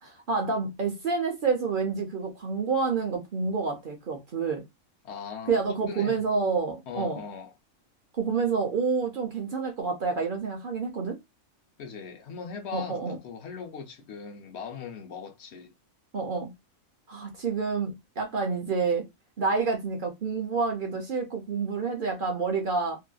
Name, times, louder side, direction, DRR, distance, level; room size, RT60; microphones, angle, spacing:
voice 1, 0.0-4.6 5.5-7.2 8.2-11.2 12.7-13.2 16.1-16.5 17.1-19.1 19.4-23.0, right 4 dB, 50° right, 0.7 m, -28 dB
voice 2, 5.0-6.2 6.9-7.5 11.8-15.7, left 6 dB, 60° left, 0.8 m, -40 dB
2.7 x 2.5 x 2.2 m
omnidirectional pair, 1.4 m